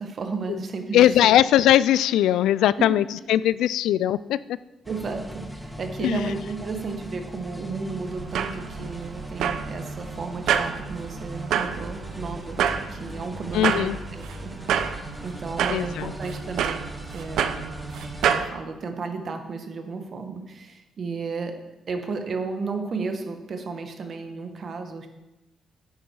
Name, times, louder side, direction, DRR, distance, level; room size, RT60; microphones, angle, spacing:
voice 1, 0.0-1.1 4.9-12.6 12.9-13.9 14.4-16.8 17.1-17.8 18.3-21.6 21.9-25.1, right 4 dB, 50° right, 6 dB, 1.6 m, -33 dB
voice 2, 0.9-4.6 6.0-6.4 13.5-14.0 15.7-16.1, left 12 dB, 85° left, 18 dB, 0.3 m, -20 dB
sound 1, 4.8-18.2, right 1 dB, ahead, 1.4 m, -39 dB
sound 2, 8.1-18.5, right 8 dB, 75° right, 0.7 m, -29 dB
10.5 x 9.1 x 4.8 m, 1.0 s
cardioid pair, 90°, 0 cm